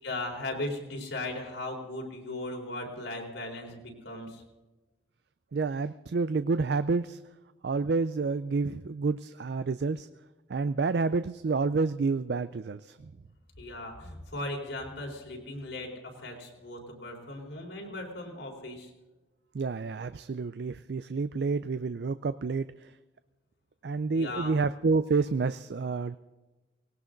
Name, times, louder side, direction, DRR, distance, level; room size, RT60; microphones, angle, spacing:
voice 1, 0.0-4.4 13.6-18.9 24.1-24.6, left 2 dB, 80° left, 0 dB, 4.3 m, -37 dB
voice 2, 5.5-7.2 7.6-10.1 10.5-12.9 19.5-22.7 23.8-26.2, right 4 dB, 60° right, 12 dB, 0.4 m, -29 dB
19.0 x 18.5 x 3.9 m, 1.2 s
head